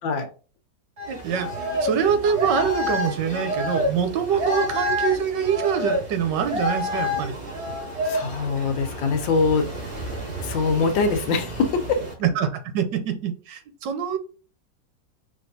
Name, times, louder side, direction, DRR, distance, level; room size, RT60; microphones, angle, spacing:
sound 1, 1.0-12.1, equal, 35° right, 2.4 m, -29 dB
voice 1, 1.1-7.3 12.2-14.2, right 7 dB, 75° right, 8 dB, 1.4 m, -25 dB
voice 2, 8.0-9.7 10.4-12.0, left 4 dB, 90° left, 6 dB, 1.5 m, -23 dB
5.2 x 3.3 x 2.7 m, 0.36 s
omnidirectional pair, 2.0 m